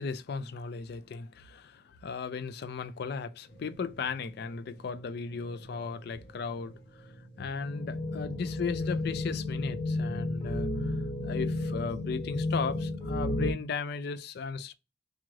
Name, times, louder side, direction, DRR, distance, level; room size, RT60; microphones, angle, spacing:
voice 1, 0.0-7.1 7.4-10.9 11.2-14.7, left 5 dB, 60° left, 0.4 m, -36 dB
sound 1, 3.5-13.5, left 2 dB, 30° left, 0.9 m, -34 dB
3.6 x 2.5 x 3.1 m
head